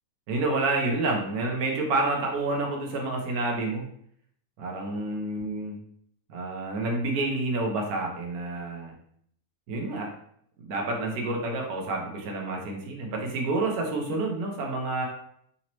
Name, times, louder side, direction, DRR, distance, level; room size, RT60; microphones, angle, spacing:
voice 1, 0.3-3.9 4.6-5.8 6.3-8.9 9.7-10.1 10.6-15.1, right 2 dB, 70° right, 1 dB, 1.3 m, -29 dB
4.0 x 2.9 x 3.0 m, 0.67 s
omnidirectional pair, 1.7 m